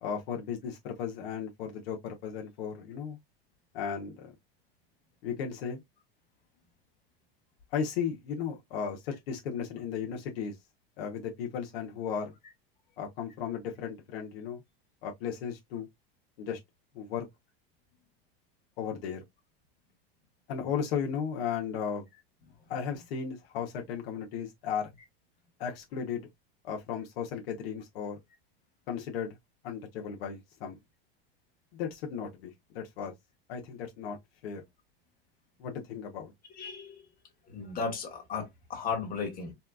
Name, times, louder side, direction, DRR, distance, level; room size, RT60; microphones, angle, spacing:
voice 1, 0.0-3.2 3.7-4.3 5.2-5.8 7.7-10.6 11.0-12.3 13.0-14.6 15.0-15.9 16.4-16.6 16.9-17.2 18.8-19.2 20.5-22.0 22.7-24.9 25.6-26.2 26.6-28.2 28.9-29.4 29.6-30.8 31.7-33.1 33.5-34.2 34.4-34.6 35.6-36.3, left 7 dB, 80° left, 1.1 m, -35 dB
voice 2, 36.6-37.0 37.5-39.5, left 5 dB, 30° left, 1.6 m, -35 dB
4.2 x 2.4 x 2.4 m
supercardioid pair, 130°, 30 cm